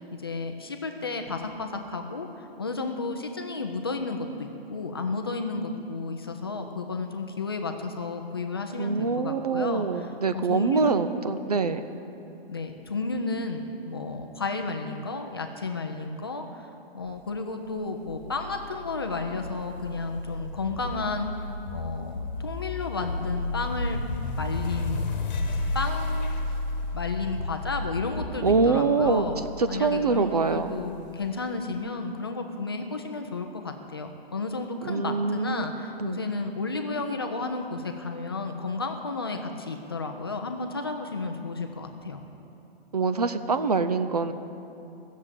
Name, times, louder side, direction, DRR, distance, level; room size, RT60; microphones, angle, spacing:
voice 1, 0.0-11.0 12.5-24.0 24.4-25.1 25.7-26.3 26.9-29.4 29.7-42.2, left 3 dB, 25° left, 4 dB, 0.5 m, -32 dB
voice 2, 8.8-11.8 28.4-29.3 29.6-30.7 34.8-35.6 36.0-36.2 42.9-44.3, right 4 dB, 40° right, 10 dB, 0.4 m, -25 dB
sound 1, 18.1-31.2, left 2 dB, 45° left, 1.3 m, -33 dB
15.0 x 7.3 x 8.2 m, 2.8 s
hypercardioid pair, 180°, 30 cm